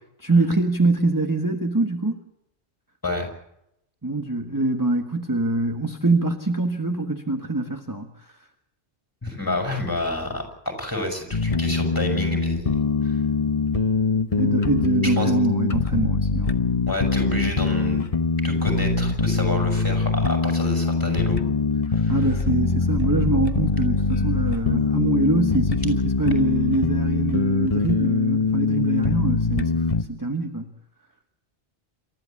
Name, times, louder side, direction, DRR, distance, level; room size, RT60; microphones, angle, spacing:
voice 1, 0.2-2.2 4.0-8.4 14.4-16.6 22.1-30.7, right 2 dB, 20° right, 5 dB, 1.5 m, -24 dB
voice 2, 9.2-12.8 13.0-13.2 15.0-15.3 16.9-18.1 18.4-21.4 21.9-22.2, left 1 dB, 20° left, 4 dB, 6.2 m, -29 dB
sound 1, 11.3-30.0, left 4 dB, 35° left, 1.0 m, -23 dB
28.5 x 13.5 x 8.7 m, 0.81 s
omnidirectional pair, 1.1 m